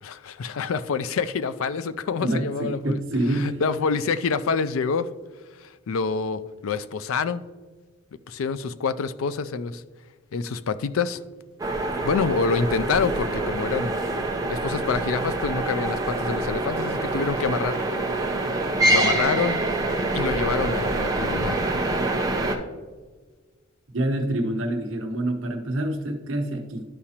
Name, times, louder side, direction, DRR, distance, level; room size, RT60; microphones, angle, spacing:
voice 1, 0.0-3.0 3.3-5.1 5.6-7.4 8.3-9.8 10.3-11.2 12.0-13.9 14.5-17.9 18.9-19.6 20.1-21.7, left 5 dB, 75° left, 0.4 m, -27 dB
voice 2, 2.2-3.6 23.9-26.8, right 1 dB, 65° right, 1.0 m, -26 dB
sound 1, 11.6-22.5, right 2 dB, 15° right, 0.6 m, -25 dB
11.5 x 4.9 x 2.9 m
head